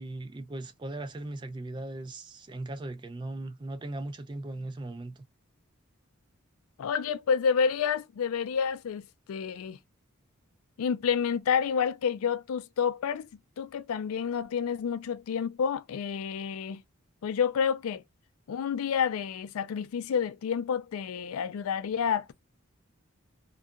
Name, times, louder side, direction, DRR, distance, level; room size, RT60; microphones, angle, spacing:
voice 1, 0.0-5.2, right 2 dB, 20° right, 0.3 m, -38 dB
voice 2, 6.8-9.8 10.8-13.3 13.6-16.8 17.2-18.0 18.5-22.3, left 7 dB, 85° left, 0.3 m, -29 dB
2.8 x 2.2 x 2.3 m
head